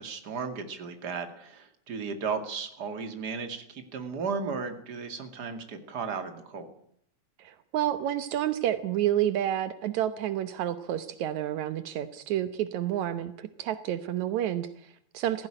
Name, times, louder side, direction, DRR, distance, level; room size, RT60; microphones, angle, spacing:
voice 1, 0.0-6.7, right 5 dB, 35° right, 7 dB, 2.6 m, -35 dB
voice 2, 7.4-15.5, right 11 dB, 75° right, 12 dB, 2.3 m, -30 dB
18.0 x 15.5 x 10.0 m, 0.69 s
omnidirectional pair, 3.3 m